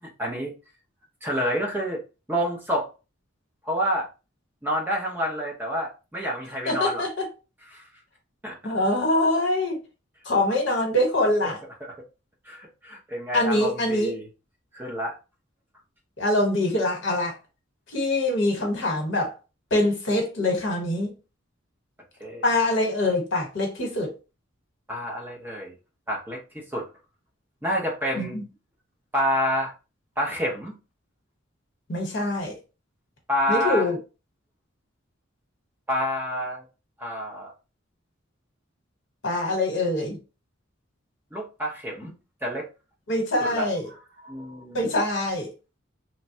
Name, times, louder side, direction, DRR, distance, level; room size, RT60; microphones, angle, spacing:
voice 1, 0.2-0.5 1.2-2.0 2.3-2.9 3.7-4.1 4.6-7.0 7.7-7.8 8.4-8.7 11.4-11.5 11.8-11.9 12.5-14.3 14.7-15.1 22.2-22.4 24.9-25.7 26.1-26.9 27.6-28.4 29.1-29.7 30.2-30.7 33.3-33.9 35.9-36.6 37.0-37.5 41.3-42.1 42.4-42.7 43.4-44.9, equal, 10° right, 0.6 m, -28 dB
voice 2, 6.7-7.3 8.6-9.8 10.2-11.6 13.3-14.1 16.2-17.3 17.9-19.3 19.7-21.1 22.4-24.1 28.1-28.4 31.9-32.5 33.5-34.0 39.2-40.2 43.1-43.9 44.7-45.5, left 1 dB, 60° left, 1.0 m, -24 dB
3.2 x 2.2 x 2.6 m
head